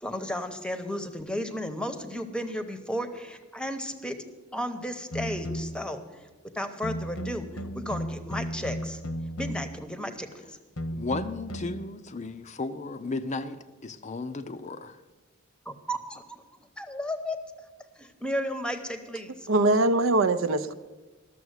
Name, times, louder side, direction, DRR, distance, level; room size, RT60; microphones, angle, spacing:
voice 1, 0.0-4.2 4.5-6.3 6.5-9.0 9.4-10.6 15.6-16.4 16.8-17.4 18.0-19.5, equal, 5° left, 8 dB, 0.9 m, -34 dB
sound 1, 5.1-5.9 6.8-9.8 10.8-11.8, equal, 90° left, 1.0 m, -35 dB
voice 2, 10.9-15.0, left 3 dB, 35° left, 10 dB, 0.5 m, -34 dB
voice 3, 19.5-20.7, right 2 dB, 65° right, 11 dB, 0.6 m, -22 dB
12.5 x 7.1 x 8.1 m, 1.2 s
head